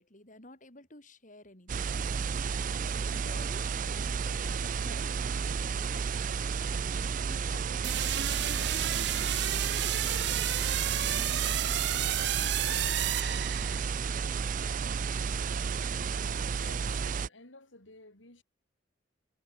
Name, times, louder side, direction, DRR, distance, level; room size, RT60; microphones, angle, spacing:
voice 1, 0.0-2.5 2.9-6.0 7.2-11.8, left 1 dB, 40° left, 7.1 m, -52 dB
sound 1, 1.7-17.3, right 5 dB, 45° right, 0.4 m, -32 dB
sound 2, 7.8-14.0, right 12 dB, 60° right, 1.5 m, -32 dB
voice 2, 16.2-18.4, left 2 dB, 80° left, 6.1 m, -53 dB
head